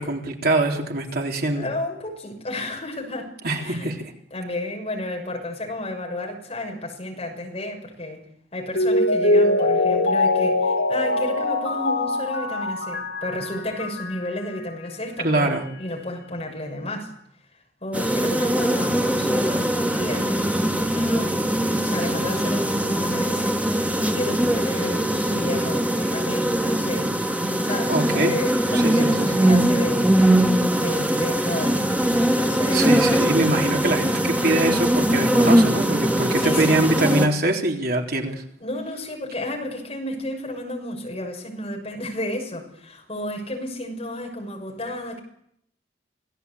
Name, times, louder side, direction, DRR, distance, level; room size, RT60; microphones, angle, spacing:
voice 1, 0.0-1.7 3.4-4.1 15.2-15.6 27.9-28.3 28.7-29.5 32.7-38.4, right 2 dB, 60° right, 1 dB, 3.6 m, -23 dB
voice 2, 1.5-3.9 4.3-8.2 8.5-17.1 17.8-23.6 24.1-27.1 27.6-30.1 30.7-31.9 32.2-33.0 36.4-37.1 38.6-45.2, left 1 dB, 35° left, 2 dB, 6.5 m, -32 dB
Mallet percussion, 8.7-14.3 14.6-14.7, left 2 dB, 70° left, 5.7 m, -22 dB
sound 1, 17.9-37.3, right 1 dB, 10° right, 2.2 m, -21 dB
26.5 x 18.0 x 8.5 m, 0.73 s
head